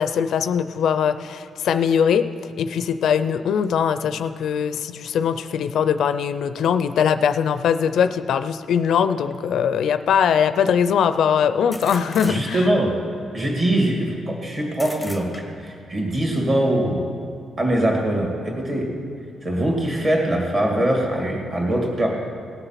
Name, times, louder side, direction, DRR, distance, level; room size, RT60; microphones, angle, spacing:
voice 1, 0.0-2.3 2.6-12.7, left 7 dB, 65° left, 12 dB, 0.4 m, -21 dB
sound 1, 9.3-9.4 11.7-12.8 14.7-15.8, left 1 dB, 5° left, 0.8 m, -38 dB
voice 2, 12.2-12.9 13.3-15.3 15.6-17.1 17.6-18.9 19.4-22.1, right 1 dB, 30° right, 0 dB, 2.2 m, -22 dB
17.5 x 6.9 x 5.8 m, 2.4 s
wide cardioid pair, 170°, 0 cm